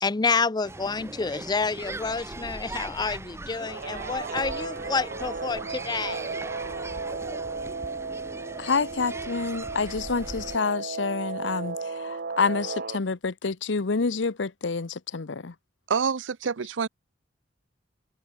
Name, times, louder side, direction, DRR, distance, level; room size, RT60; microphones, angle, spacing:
voice 1, 0.0-6.3, left 4 dB, 25° left, 0.5 m, -28 dB
sound 1, 0.6-10.6, right 2 dB, 15° right, 0.8 m, -39 dB
Guitar, 3.5-13.0, right 4 dB, 55° right, 1.0 m, -35 dB
voice 2, 8.6-15.5, left 4 dB, 75° left, 0.8 m, -28 dB
voice 3, 15.9-16.9, right 6 dB, 85° right, 0.6 m, -27 dB
head